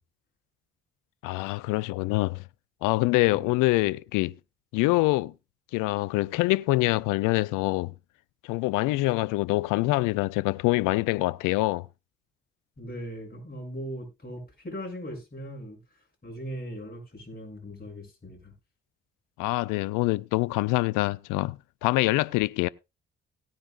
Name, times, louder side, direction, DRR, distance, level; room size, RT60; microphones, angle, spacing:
voice 1, 1.2-2.4 2.8-4.3 4.7-5.3 5.7-7.9 8.4-11.9 19.4-22.7, left 20 dB, 70° left, 0.6 m, -25 dB
voice 2, 12.8-15.8 16.2-18.5, equal, 30° left, 7.2 m, -39 dB
18.0 x 9.6 x 2.4 m
hypercardioid pair, 45°, 33 cm